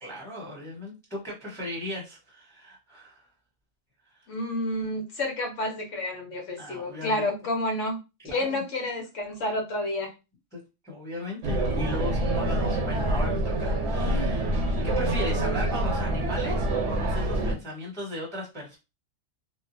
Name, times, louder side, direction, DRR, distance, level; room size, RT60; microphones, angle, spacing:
voice 1, 0.0-3.2 6.6-7.3 8.2-8.6 10.5-18.8, left 1 dB, 5° left, -4 dB, 0.9 m, -37 dB
voice 2, 4.3-8.0 8.2-10.1, left 1 dB, 70° left, 3 dB, 1.2 m, -30 dB
sound 1, 11.4-17.5, right 1 dB, 65° right, 1.0 m, -26 dB
2.9 x 2.0 x 2.6 m, 0.27 s
omnidirectional pair, 1.4 m